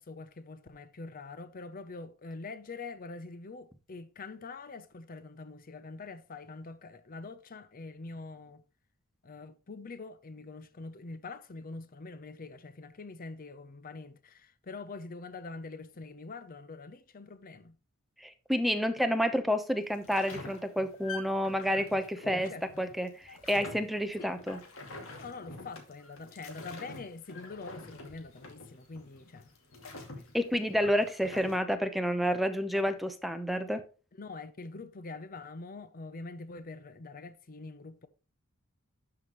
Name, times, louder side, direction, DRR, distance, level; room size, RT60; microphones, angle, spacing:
voice 1, 0.0-8.6 9.2-17.8 22.2-22.8 24.2-24.3 25.2-29.5 30.1-30.3 34.2-38.1, left 3 dB, 40° left, 0.6 m, -44 dB
voice 2, 18.2-22.5 22.8-23.1 23.5-24.6 30.3-33.8, equal, ahead, 0.8 m, -29 dB
sound 1, 19.8-31.6, left 3 dB, 65° left, 2.4 m, -47 dB
12.0 x 5.7 x 3.0 m
head